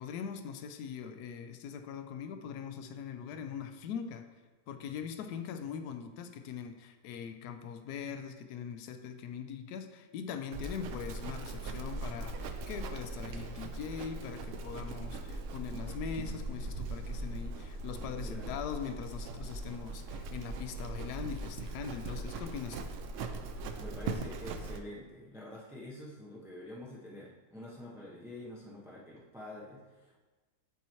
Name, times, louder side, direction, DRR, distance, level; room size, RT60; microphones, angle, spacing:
voice 1, 0.0-4.3 4.7-22.9, left 7 dB, 80° left, 7 dB, 1.1 m, -41 dB
Livestock farm animals working animals, 10.5-24.8, right 2 dB, 70° right, 0.7 m, -40 dB
voice 2, 18.2-18.6 23.8-30.2, left 1 dB, 5° right, -5 dB, 0.4 m, -47 dB
9.0 x 3.0 x 4.3 m, 1.2 s
omnidirectional pair, 1.7 m